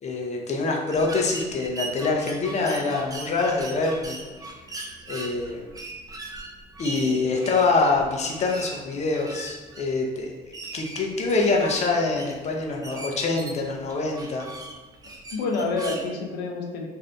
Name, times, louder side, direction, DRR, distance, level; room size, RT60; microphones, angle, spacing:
voice 1, 0.0-4.3 5.1-5.7 6.8-10.3 10.7-14.5, left 3 dB, 40° left, 0 dB, 0.6 m, -25 dB
sound 1, 0.9-16.0, right 2 dB, 20° right, 0.5 m, -40 dB
voice 2, 6.9-7.3 15.3-16.9, left 3 dB, 80° left, 1 dB, 0.6 m, -29 dB
2.6 x 2.6 x 3.3 m, 1.3 s
cardioid pair, 110°, 17 cm